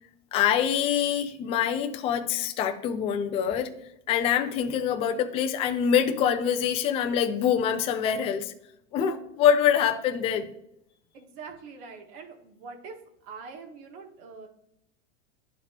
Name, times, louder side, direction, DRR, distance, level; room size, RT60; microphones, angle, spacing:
voice 1, 0.3-3.8 4.1-8.5 8.9-10.5, left 8 dB, 15° left, 0.3 m, -25 dB
voice 2, 11.1-14.5, right 5 dB, 50° right, 1.6 m, -44 dB
11.5 x 4.0 x 2.8 m
supercardioid pair, 135°, 38 cm